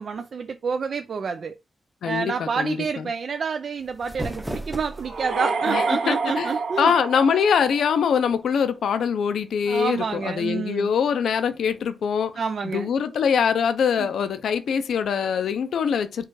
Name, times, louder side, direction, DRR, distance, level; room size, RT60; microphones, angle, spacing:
voice 1, 0.0-1.5 2.0-7.0 9.7-10.9 12.4-12.9 14.0-14.1, right 5 dB, 60° right, 0.4 m, -28 dB
voice 2, 2.0-3.1 5.7-12.3 12.7-16.2, left 7 dB, 85° left, 0.5 m, -23 dB
sound 1, 3.8-5.4, right 1 dB, 10° right, 0.7 m, -34 dB
sound 2, 5.0-8.0, right 4 dB, 90° right, 1.4 m, -28 dB
4.5 x 2.4 x 4.7 m
cardioid pair, 85°, 0 cm